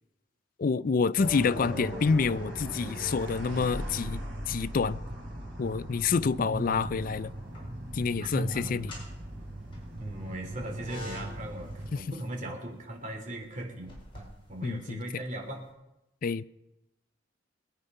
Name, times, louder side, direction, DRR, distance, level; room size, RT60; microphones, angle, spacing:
voice 1, 0.6-5.0 5.6-7.3 7.9-8.9 11.9-12.0 14.6-15.0 16.2-16.4, left 5 dB, 50° left, 0.4 m, -28 dB
sound 1, 1.2-5.2, left 1 dB, 5° left, 4.6 m, -43 dB
sound 2, 1.2-12.0, right 1 dB, 65° right, 5.4 m, -40 dB
voice 2, 6.4-6.7 8.2-8.9 10.0-15.6, right 1 dB, 45° right, 3.1 m, -38 dB
sound 3, 7.3-8.0 8.7-15.5, left 1 dB, 30° left, 4.9 m, -48 dB
22.0 x 9.3 x 5.5 m
head